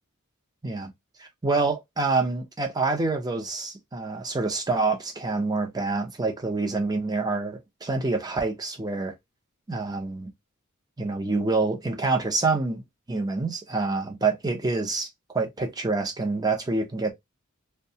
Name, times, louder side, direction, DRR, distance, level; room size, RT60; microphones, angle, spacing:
voice 1, 1.2-9.1 9.7-10.3 11.0-15.1 15.3-17.1, right 3 dB, 20° right, 0.6 m, -27 dB
2.7 x 2.2 x 2.7 m
head